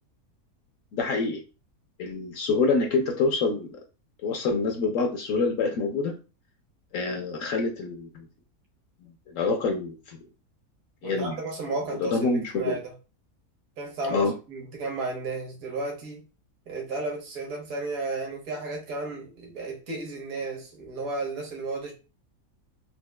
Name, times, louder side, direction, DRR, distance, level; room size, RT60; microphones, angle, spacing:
voice 1, 0.9-1.4 2.0-3.8 4.2-6.1 6.9-8.3 9.0-10.2 11.0-11.4 12.0-12.8 14.1-14.3, left 4 dB, 65° left, 0.9 m, -26 dB
voice 2, 11.0-12.9 13.8-16.2 16.7-21.9, right 3 dB, 65° right, 1.5 m, -33 dB
4.2 x 2.4 x 2.3 m
omnidirectional pair, 1.6 m